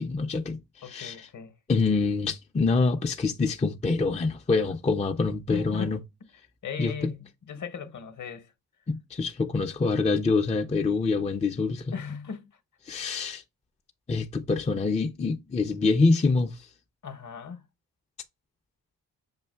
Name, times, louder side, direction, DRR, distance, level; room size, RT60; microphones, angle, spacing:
voice 1, 0.0-1.3 1.7-6.0 6.8-7.1 8.9-11.9 12.9-13.4 14.1-16.7, left 4 dB, 15° left, 0.4 m, -26 dB
voice 2, 0.8-1.5 5.5-5.9 6.6-8.5 11.9-12.5 17.0-17.6, left 6 dB, 45° left, 0.8 m, -37 dB
6.5 x 2.4 x 2.2 m
cardioid pair, 50°, 41 cm